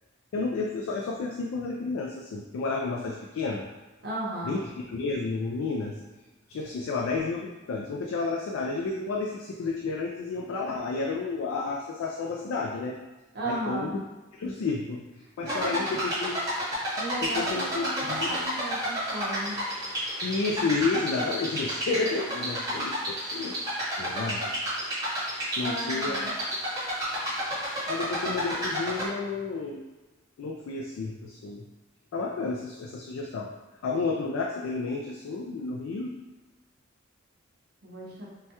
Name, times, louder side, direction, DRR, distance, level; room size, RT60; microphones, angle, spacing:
voice 1, 0.3-3.7 4.4-6.0 6.5-13.0 13.4-14.0 14.3-15.0 15.4-16.4 17.2-18.4 20.2-23.6 24.0-24.5 25.6-26.6 27.9-29.8 30.4-31.6 32.1-33.5 33.8-36.1, left 4 dB, 75° left, 0 dB, 0.3 m, -31 dB
voice 2, 4.0-4.6 13.3-14.0 15.4-15.9 17.0-19.6 25.6-26.3 37.8-38.3, right 1 dB, 50° right, -5 dB, 0.6 m, -35 dB
sound 1, 15.5-29.1, equal, 15° right, 0.9 m, -31 dB
3.3 x 2.2 x 2.8 m, 1.2 s
head